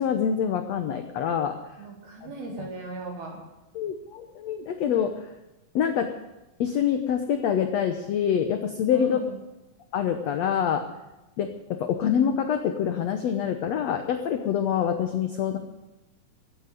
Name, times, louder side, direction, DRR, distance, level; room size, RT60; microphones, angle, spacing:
voice 1, 0.0-1.6 2.2-2.3 2.6-2.7 3.7-5.3 5.7-6.1 6.6-9.2 9.9-10.8 11.4-15.6, left 8 dB, 70° left, 7 dB, 1.7 m, -26 dB
voice 2, 1.8-3.4 8.9-9.4, right 3 dB, 80° right, 0 dB, 6.0 m, -37 dB
16.5 x 8.8 x 9.5 m, 1.0 s
omnidirectional pair, 4.3 m